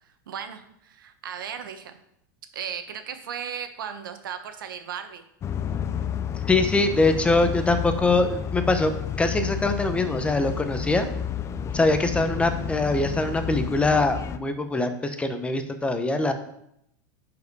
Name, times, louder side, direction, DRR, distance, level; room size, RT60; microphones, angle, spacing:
voice 1, 0.0-2.0 2.5-5.2, right 8 dB, 85° right, 8 dB, 1.1 m, -36 dB
sound 1, 5.4-14.4, left 8 dB, 25° left, 0.5 m, -31 dB
voice 2, 6.3-8.9 9.2-11.1 11.7-16.3, left 2 dB, 10° left, 8 dB, 0.9 m, -23 dB
10.5 x 4.9 x 4.8 m, 0.75 s
supercardioid pair, 120°, 11 cm